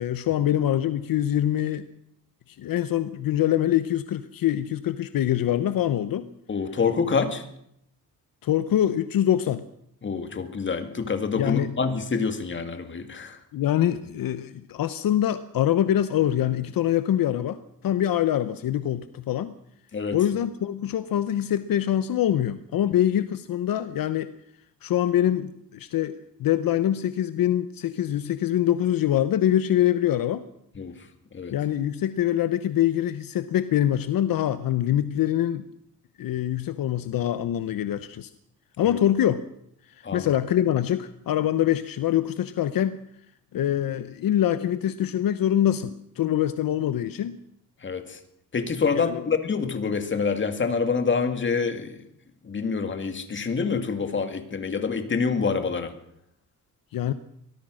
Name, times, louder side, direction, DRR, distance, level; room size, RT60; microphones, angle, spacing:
voice 1, 0.0-1.8 2.5-6.3 8.4-9.6 11.4-11.8 13.5-19.5 20.1-24.3 24.8-30.4 31.5-35.6 36.2-38.3 38.8-39.4 40.1-43.0 43.5-47.4 48.9-49.2 56.9-57.1, left 11 dB, 70° left, 12 dB, 1.0 m, -24 dB
voice 2, 6.5-7.4 10.0-13.4 19.9-20.2 30.8-30.9 31.3-31.5 40.0-40.3 47.8-48.2 48.5-52.0 52.4-55.9, left 5 dB, 30° left, 8 dB, 2.2 m, -26 dB
24.0 x 17.5 x 6.4 m, 0.74 s
cardioid pair, 140°, 36 cm